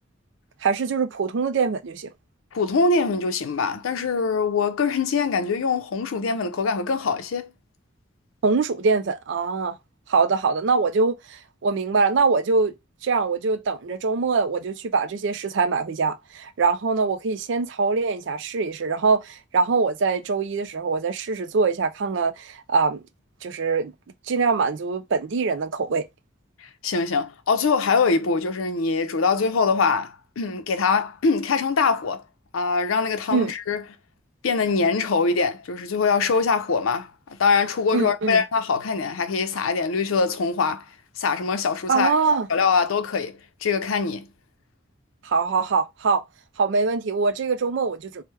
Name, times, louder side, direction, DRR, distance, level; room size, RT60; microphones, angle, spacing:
voice 1, 0.6-2.1 8.4-9.8 10.1-12.7 13.0-23.0 23.4-23.9 24.3-26.0 33.3-33.5 37.9-38.4 41.9-42.5 45.2-46.2 46.6-48.2, right 4 dB, 60° right, 0.4 m, -23 dB
voice 2, 2.5-7.5 26.8-32.2 32.5-33.8 34.4-37.1 37.4-40.9 41.2-42.1 42.5-44.3, left 4 dB, 80° left, 0.5 m, -23 dB
3.3 x 2.1 x 3.2 m
head